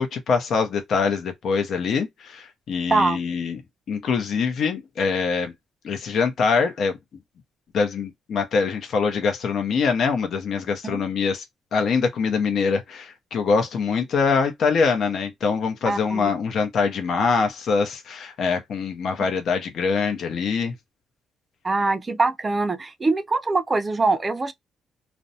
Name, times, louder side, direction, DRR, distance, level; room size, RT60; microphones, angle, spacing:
voice 1, 0.0-3.6 3.9-5.5 5.8-7.0 7.7-11.4 11.7-20.7, left 5 dB, 65° left, 0.7 m, -24 dB
voice 2, 15.8-16.3 21.6-24.5, right 3 dB, 30° right, 0.4 m, -23 dB
2.5 x 2.1 x 2.6 m
cardioid pair, 90°, 0 cm